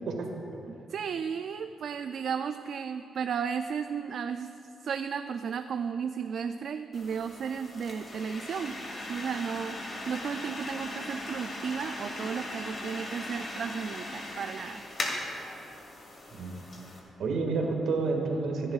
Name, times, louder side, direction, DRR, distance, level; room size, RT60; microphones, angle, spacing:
voice 1, 0.1-0.6 16.3-16.5 17.2-18.7, right 3 dB, 75° right, 2 dB, 1.8 m, -30 dB
voice 2, 0.9-4.5 4.8-8.8 9.1-14.8, right 7 dB, 60° right, 8 dB, 0.3 m, -34 dB
sound 1, 6.9-17.0, left 1 dB, 40° left, 2.2 m, -39 dB
24.5 x 11.0 x 2.4 m, 2.9 s
cardioid pair, 130°, 0 cm